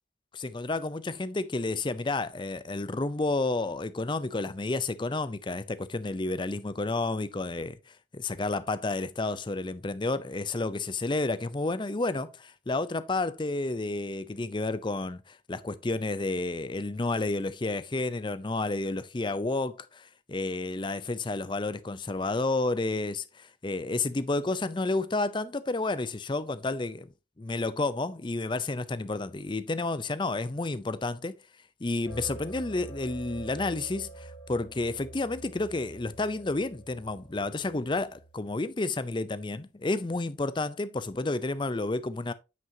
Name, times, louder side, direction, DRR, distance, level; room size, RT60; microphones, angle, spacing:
voice 1, 0.3-7.8 8.1-27.1 27.4-31.3 31.8-42.3, left 2 dB, 25° left, 0.5 m, -31 dB
sound 1, 32.1-38.6, right 2 dB, 70° left, 2.5 m, -46 dB
9.3 x 5.7 x 2.8 m
head